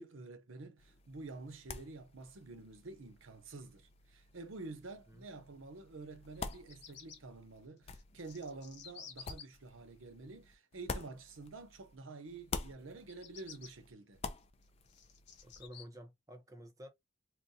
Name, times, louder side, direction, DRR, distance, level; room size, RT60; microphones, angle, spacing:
voice 1, 0.0-14.2, right 3 dB, 85° right, 0.7 m, -49 dB
sound 1, 0.8-12.0 12.3-15.7, left 4 dB, 30° left, 0.4 m, -48 dB
Bird vocalization bird call bird song, 6.3-7.2 7.9-9.4 13.0-13.7 14.4-15.8, left 7 dB, 55° left, 0.8 m, -52 dB
voice 2, 15.4-16.9, equal, 15° right, 0.6 m, -51 dB
3.8 x 2.2 x 2.6 m
head